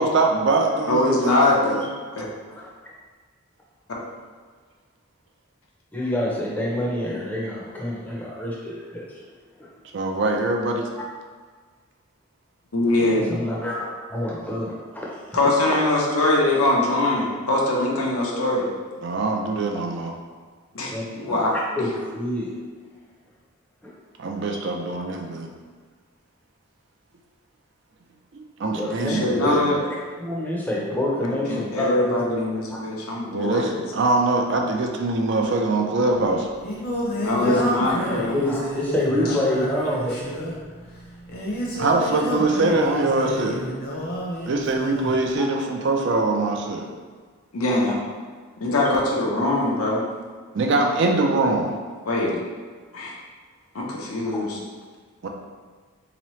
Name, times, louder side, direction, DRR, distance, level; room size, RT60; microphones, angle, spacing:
voice 1, 0.0-1.9 9.9-10.8 19.0-20.1 24.2-25.5 28.3-29.8 33.3-36.5 41.7-43.6 44.5-46.8 50.5-51.7 55.2-55.3, right 2 dB, 55° right, 2 dB, 0.4 m, -23 dB
voice 2, 0.9-1.8 2.1-2.2 12.7-13.3 15.3-18.6 20.7-21.5 29.1-29.8 31.2-33.7 37.2-38.3 47.5-48.0 48.6-50.0 52.0-52.4 52.9-53.1 53.7-54.6, left 2 dB, 90° left, -3 dB, 0.8 m, -22 dB
voice 3, 5.9-9.2 9.6-9.7 13.0-15.4 20.9-22.5 23.8-23.9 24.5-24.7 28.7-29.6 30.2-32.2 32.7-32.8 37.4-37.9 38.3-40.3 41.8-41.9 45.4-45.5, left 1 dB, 5° left, -5 dB, 0.5 m, -27 dB
Singing, 36.1-45.2, equal, 45° left, 0.7 m, -30 dB
3.7 x 2.9 x 3.1 m, 1.5 s
head